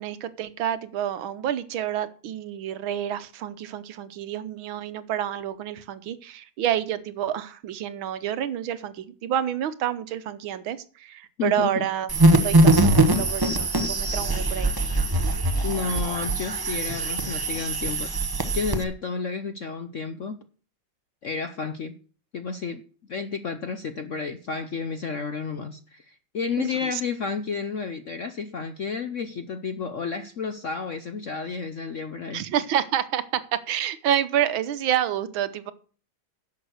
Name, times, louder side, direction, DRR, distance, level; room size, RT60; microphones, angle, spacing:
voice 1, 0.0-12.1 12.4-14.8 26.6-27.0 32.3-35.7, right 10 dB, 80° right, 13 dB, 1.7 m, -28 dB
voice 2, 11.4-11.8 15.6-18.1 18.5-20.4 21.2-21.9 22.3-22.8 23.1-32.5, left 5 dB, 60° left, 9 dB, 0.8 m, -31 dB
sound 1, 12.1-18.8, right 2 dB, 30° right, 0.4 m, -22 dB
11.0 x 7.3 x 6.3 m, 0.41 s
omnidirectional pair, 2.2 m